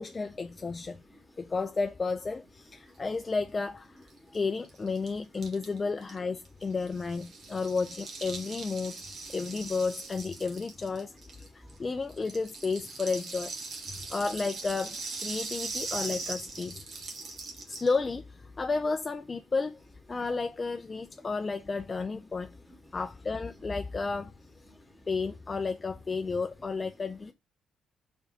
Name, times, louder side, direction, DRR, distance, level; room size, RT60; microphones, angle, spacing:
voice 1, 0.0-1.0 1.4-9.0 9.3-13.5 13.9-16.8 17.7-19.8 20.1-22.5 22.9-24.3 25.1-27.3, left 4 dB, 30° left, 0.4 m, -32 dB
Rattle (instrument), 4.1-4.2 4.3-4.4 4.6-11.8 12.1-17.9, right 3 dB, 60° right, 1.6 m, -40 dB
voice 2, 11.5-11.8 13.9-14.0 16.9-17.8 22.7-22.8 24.7-25.0, equal, ahead, 2.0 m, -56 dB
4.6 x 4.6 x 5.0 m
cardioid pair, 90°, 0 cm